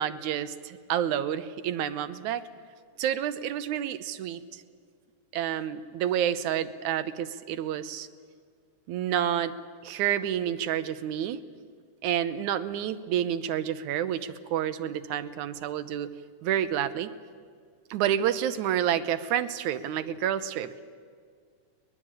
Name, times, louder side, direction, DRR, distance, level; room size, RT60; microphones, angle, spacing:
voice 1, 0.0-2.4 3.0-4.6 5.3-8.1 8.9-9.5 9.8-11.4 12.0-16.1 16.4-17.1 17.9-20.7, right 10 dB, 85° right, 12 dB, 2.3 m, -29 dB
22.5 x 21.0 x 8.9 m, 2.1 s
omnidirectional pair, 3.3 m